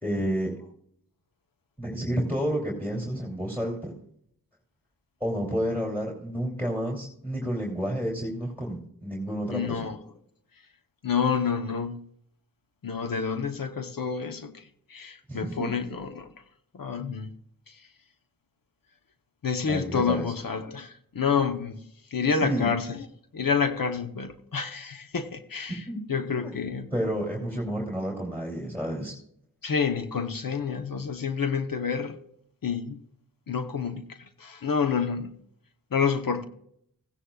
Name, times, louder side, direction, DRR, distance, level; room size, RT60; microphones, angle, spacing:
voice 1, 0.0-0.5 1.8-3.9 5.2-9.8 15.3-15.7 19.7-20.3 22.3-22.7 25.9-26.0 26.4-26.5 26.9-29.1, equal, 5° left, 2.8 m, -30 dB
voice 2, 9.5-10.0 11.0-12.0 12.8-16.3 16.7-17.3 17.7-17.8 19.4-21.8 22.1-23.0 23.3-26.9 29.6-32.2 32.6-33.0 33.5-35.3 35.9-36.4, left 6 dB, 70° left, 0.9 m, -28 dB
16.5 x 9.9 x 2.3 m
cardioid pair, 55°, 35 cm